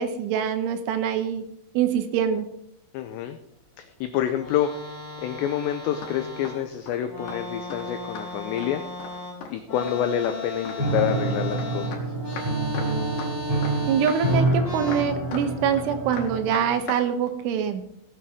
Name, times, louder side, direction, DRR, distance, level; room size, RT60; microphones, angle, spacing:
voice 1, 0.0-1.4 1.7-2.4 13.9-17.8, right 8 dB, 80° right, 8 dB, 3.3 m, -24 dB
voice 2, 2.9-3.4 3.8-4.8 5.2-8.8 9.5-12.1, left 10 dB, 85° left, 8 dB, 2.5 m, -27 dB
sound 1, 4.3-6.7 7.0-15.0, left 2 dB, 30° left, 4.9 m, -36 dB
sound 2, 6.0-6.1 6.4-6.6 6.9-7.0 7.3-7.4 7.7-7.8 8.2-8.7 9.0-9.1 9.4-9.5 9.8-10.0 10.2-10.4 10.7-11.7 11.9-12.0 12.3-12.5 12.7-13.3 13.6-13.7 14.0-14.2 14.5-14.6 14.9-15.5 15.7-15.9 16.1-17.0 17.3-17.4, left 4 dB, 65° left, 4.2 m, -37 dB
Piano, 10.8-16.7, right 2 dB, 10° right, 3.7 m, -27 dB
18.0 x 8.7 x 3.6 m, 0.77 s
omnidirectional pair, 5.8 m